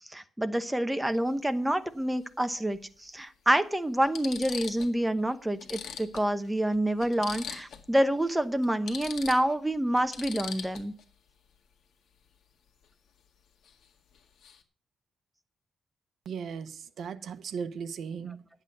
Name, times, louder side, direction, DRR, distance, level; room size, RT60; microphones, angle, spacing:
voice 1, 0.1-10.9, right 1 dB, 5° right, 10 dB, 0.9 m, -27 dB
sound 1, 1.1-1.3 2.8-2.9 3.5-3.6 4.0-5.0 5.3-5.4 5.6-7.9 8.2-8.3 8.6-11.0 13.6-13.9 14.1-14.6, left 7 dB, 70° left, 1.8 m, -41 dB
voice 2, 16.3-18.4, right 6 dB, 60° right, 9 dB, 1.0 m, -37 dB
11.0 x 8.2 x 6.8 m, 0.42 s
wide cardioid pair, 155°, 0 cm